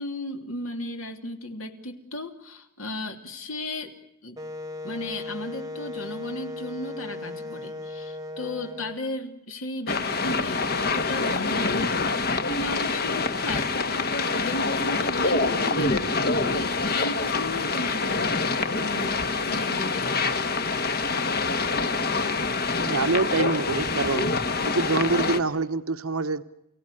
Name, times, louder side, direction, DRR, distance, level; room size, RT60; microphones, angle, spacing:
voice 1, 0.0-4.0 4.2-4.4 4.8-20.3, left 2 dB, 70° left, 4 dB, 3.0 m, -35 dB
Wind instrument woodwind instrument, 4.4-9.0, left 2 dB, 15° right, 1.2 m, -37 dB
sound 1, 9.9-25.4, left 3 dB, 45° left, 1.5 m, -26 dB
voice 2, 22.8-24.3 24.6-26.4, right 3 dB, 75° right, 11 dB, 1.0 m, -25 dB
29.5 x 17.5 x 9.9 m, 0.83 s
head